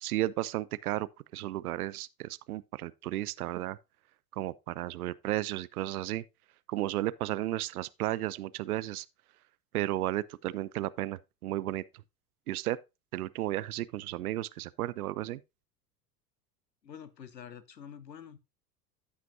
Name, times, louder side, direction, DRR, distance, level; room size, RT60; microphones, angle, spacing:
voice 1, 0.0-3.8 4.3-6.2 6.7-9.1 9.7-11.8 12.5-12.8 13.1-15.4, right 15 dB, 65° right, 0.6 m, -33 dB
voice 2, 16.8-18.4, left 8 dB, 85° left, 1.0 m, -47 dB
14.0 x 5.9 x 2.6 m
figure-of-eight pair, 80°, 49 cm